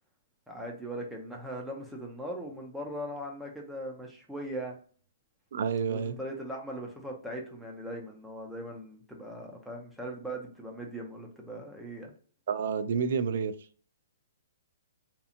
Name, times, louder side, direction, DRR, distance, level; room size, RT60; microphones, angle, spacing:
voice 1, 0.5-4.8 5.8-12.1, right 1 dB, ahead, 0.6 m, -39 dB
voice 2, 5.5-6.2 12.5-13.5, right 6 dB, 60° right, 0.3 m, -29 dB
2.8 x 2.3 x 2.5 m
hypercardioid pair, 150°, 0 cm